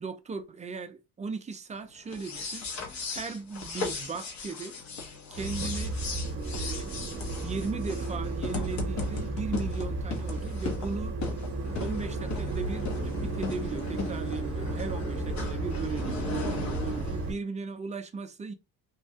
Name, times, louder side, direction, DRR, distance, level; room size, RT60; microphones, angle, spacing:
voice 1, 0.0-2.7 3.1-4.7 5.3-6.0 6.5-7.0 7.4-11.1 11.8-18.5, right 4 dB, 20° right, 0.4 m, -37 dB
sound 1, 2.1-17.3, left 4 dB, 50° left, 0.9 m, -37 dB
sound 2, 5.3-17.3, right 2 dB, 45° right, 0.8 m, -33 dB
3.1 x 2.2 x 2.7 m
cardioid pair, 120°, 36 cm